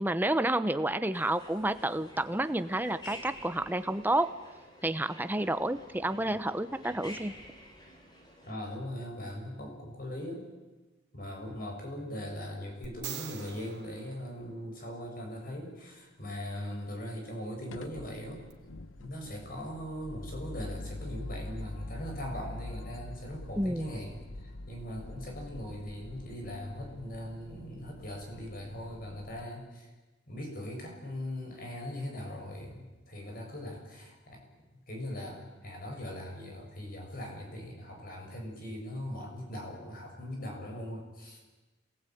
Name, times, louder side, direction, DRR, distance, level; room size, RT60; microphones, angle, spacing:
voice 1, 0.0-4.3 4.8-7.3 23.6-23.9, right 1 dB, 10° right, 12 dB, 0.9 m, -30 dB
sound 1, 1.1-8.5, left 1 dB, 20° left, 4.0 m, -51 dB
voice 2, 8.5-10.5 11.1-18.5 19.0-29.9 30.3-34.6 34.9-41.4, equal, 45° left, 2 dB, 7.0 m, -40 dB
sound 2, 12.8-15.1 18.5-18.6, right 9 dB, 60° right, 3.0 m, -44 dB
sound 3, 17.7-29.5, left 2 dB, 90° left, 1.1 m, -45 dB
27.5 x 19.5 x 9.3 m, 1.2 s
head